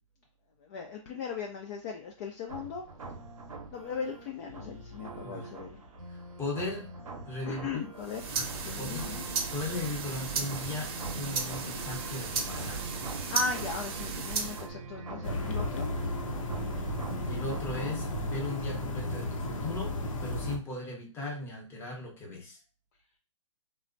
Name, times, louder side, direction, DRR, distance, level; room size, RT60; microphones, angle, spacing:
voice 1, 0.6-2.8 3.7-5.8 7.5-8.3 8.6-9.2 13.3-15.9, left 5 dB, 35° left, 1 dB, 0.4 m, -38 dB
sound 1, 2.5-18.5, right 3 dB, 80° right, 0.7 m, -44 dB
voice 2, 6.1-6.9 7.2-7.8 8.4-9.1 9.5-12.9 17.2-22.6, left 2 dB, 15° left, -1 dB, 0.8 m, -38 dB
sound 2, 8.0-14.7, right 4 dB, 50° right, 0.7 m, -35 dB
sound 3, 15.2-20.6, left 1 dB, 70° left, 0.7 m, -34 dB
3.2 x 2.1 x 2.5 m, 0.35 s
hypercardioid pair, 130°, 17 cm